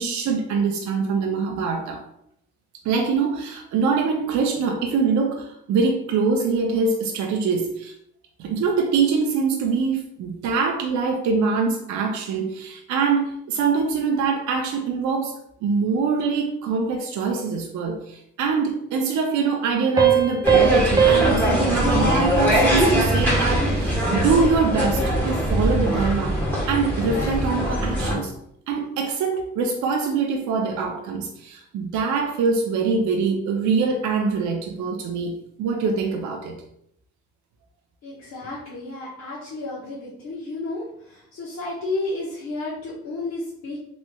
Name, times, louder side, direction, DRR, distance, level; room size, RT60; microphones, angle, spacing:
voice 1, 0.0-2.0 2.8-7.9 8.4-26.4 26.7-28.3 28.7-36.6, right 5 dB, 70° right, 2 dB, 0.5 m, -24 dB
sound 1, 20.0-23.3, right 8 dB, 15° right, 0.4 m, -22 dB
sound 2, 20.4-28.1, equal, 5° left, 1.2 m, -22 dB
voice 2, 38.0-43.8, left 2 dB, 60° left, -7 dB, 0.9 m, -32 dB
3.1 x 3.0 x 2.2 m, 0.74 s
cardioid pair, 90°, 30 cm